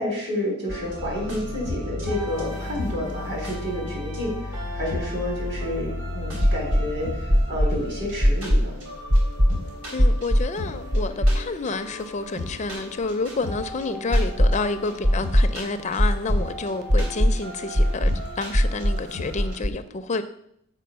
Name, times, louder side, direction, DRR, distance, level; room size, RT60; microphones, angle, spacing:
voice 1, 0.0-8.8, left 1 dB, 55° right, 4.1 m, -30 dB
sound 1, 0.7-19.6, left 1 dB, 75° right, 3.3 m, -34 dB
sound 2, 2.6-2.7 2.9-3.0 4.6-5.8 6.4-6.9 7.3-7.8 8.2-8.7 9.1-9.5 10.0-10.5 10.9-11.7 12.0-12.1 14.1-14.7 15.0-15.5 16.0-16.5 16.9-17.4 17.8-18.2 18.5-19.0 19.4-19.7, equal, 35° right, 0.6 m, -19 dB
voice 2, 9.9-18.1 18.4-20.2, left 3 dB, 35° left, 0.4 m, -29 dB
7.7 x 4.8 x 6.7 m
head